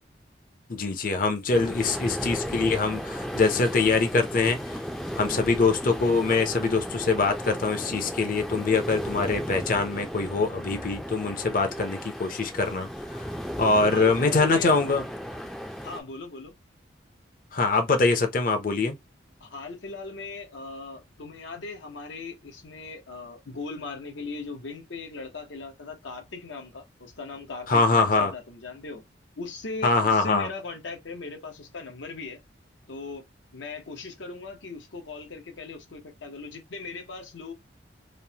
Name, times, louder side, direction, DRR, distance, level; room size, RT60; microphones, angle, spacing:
voice 1, 0.7-4.6 5.1-12.9 13.6-15.1 17.5-19.0 27.7-28.3 29.8-30.5, left 3 dB, 45° left, 0.6 m, -23 dB
sound 1, 1.5-16.0, equal, ahead, 0.3 m, -35 dB
voice 2, 13.9-14.7 15.8-16.5 19.4-29.0 29.4-32.4 32.9-33.2 33.5-37.5, left 3 dB, 85° left, 0.8 m, -39 dB
3.0 x 2.0 x 2.7 m
head